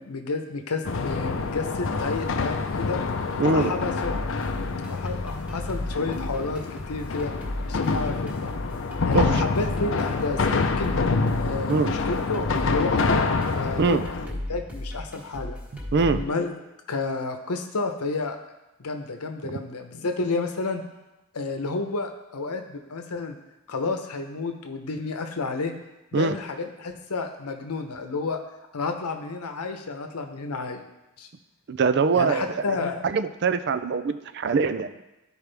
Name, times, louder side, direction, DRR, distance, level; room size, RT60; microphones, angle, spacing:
voice 1, 0.0-3.0 3.5-4.1 4.9-7.3 7.7-8.5 9.0-11.0 11.4-15.6 16.1-16.5 16.9-18.4 18.8-20.8 21.3-23.4 23.7-25.7 26.1-28.4 28.7-30.8 31.2-31.3 32.1-33.1, left 3 dB, 90° left, 5 dB, 0.8 m, -31 dB
sound 1, 0.8-14.3, left 4 dB, 60° left, 0.5 m, -27 dB
voice 2, 3.4-3.7 9.1-9.4 11.7-11.9 13.8-14.0 15.9-16.2 19.4-19.6 26.1-26.4 31.7-32.6 33.0-35.0, right 4 dB, 50° right, 11 dB, 0.4 m, -23 dB
sound 2, 4.0-16.3, left 1 dB, 5° right, 1.3 m, -35 dB
12.5 x 4.7 x 3.4 m, 0.97 s
head